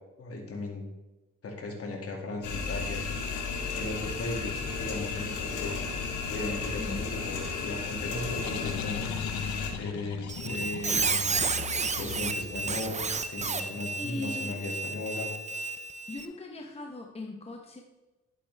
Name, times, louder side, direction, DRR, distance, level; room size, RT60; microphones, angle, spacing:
voice 1, 0.2-0.9 1.4-3.0 3.7-5.9 6.3-9.1 9.8-11.4 11.9-15.3, left 2 dB, 50° left, 1 dB, 2.4 m, -37 dB
sound 1, 2.4-9.7, left 5 dB, 85° left, 1.9 m, -34 dB
voice 2, 6.7-7.1 14.0-14.6 16.1-17.8, left 2 dB, 20° left, 2 dB, 1.1 m, -39 dB
sound 2, 8.2-13.4, left 8 dB, 65° left, 0.8 m, -39 dB
Squeak, 10.3-16.3, right 4 dB, 25° right, 0.7 m, -32 dB
11.5 x 8.4 x 3.5 m, 1.1 s
cardioid pair, 90°, 30 cm